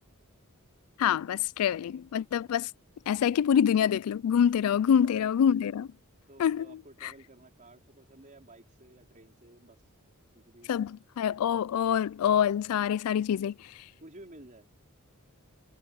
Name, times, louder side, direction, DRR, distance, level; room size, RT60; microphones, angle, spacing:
voice 1, 1.0-2.7 3.1-5.9 6.4-6.7 10.7-13.5, left 8 dB, 75° left, 0.3 m, -26 dB
voice 2, 4.7-5.1 6.3-9.8 10.3-10.7 14.0-14.7, right 2 dB, 35° right, 4.6 m, -53 dB
head